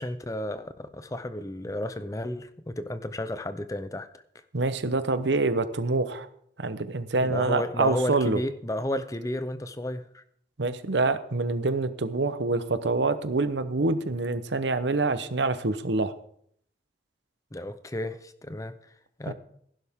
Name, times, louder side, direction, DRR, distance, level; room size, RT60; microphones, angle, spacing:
voice 1, 0.0-4.1 7.2-10.2 17.5-18.7 19.2-19.3, left 1 dB, 20° left, 0.7 m, -32 dB
voice 2, 4.5-6.3 6.6-8.4 10.6-16.1 19.3-19.4, right 3 dB, 80° right, 0.9 m, -26 dB
16.0 x 11.0 x 3.7 m
head